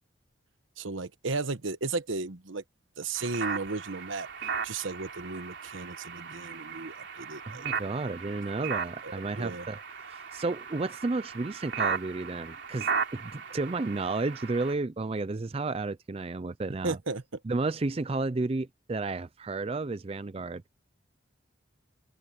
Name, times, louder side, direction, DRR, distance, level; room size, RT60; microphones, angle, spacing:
voice 1, 0.8-2.6 3.0-7.6 9.0-9.7 16.8-17.2, right 3 dB, 80° right, 1.2 m, -35 dB
sound 1, 3.2-14.8, right 5 dB, 60° right, 3.6 m, -36 dB
voice 2, 7.5-9.8 10.1-17.0 17.4-20.6, right 3 dB, 30° right, 0.4 m, -32 dB
open air
head